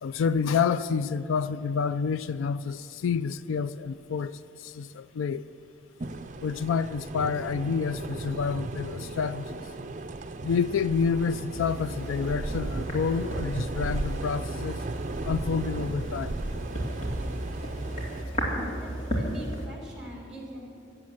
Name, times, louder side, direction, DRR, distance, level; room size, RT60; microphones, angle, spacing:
voice 1, 0.0-5.4 6.4-9.6 10.4-14.8 15.2-16.3, left 6 dB, 85° left, 15 dB, 0.4 m, -28 dB
sound 1, 6.0-18.2, right 2 dB, 40° right, 0.5 m, -36 dB
sound 2, 11.5-19.7, equal, 35° left, 2.7 m, -34 dB
voice 2, 18.7-20.8, equal, 5° right, -1 dB, 2.8 m, -43 dB
16.0 x 8.0 x 7.7 m, 2.5 s
head